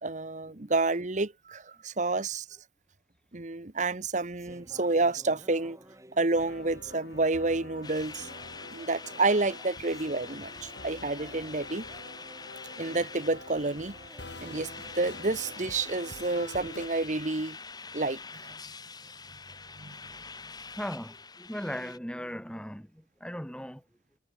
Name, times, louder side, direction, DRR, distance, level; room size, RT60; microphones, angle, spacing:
voice 1, 0.0-2.4 3.3-5.8 6.2-8.3 8.7-11.8 12.8-13.9 14.4-17.6 17.9-18.5 19.8-20.0, right 3 dB, 45° right, 1.2 m, -29 dB
sound 1, 3.8-17.3, right 1 dB, 15° right, 3.9 m, -53 dB
sound 2, 6.3-16.9, left 2 dB, 80° left, 6.2 m, -47 dB
sound 3, 7.8-22.0, left 4 dB, 25° left, 5.5 m, -45 dB
voice 2, 20.8-23.8, equal, 5° left, 6.4 m, -38 dB
head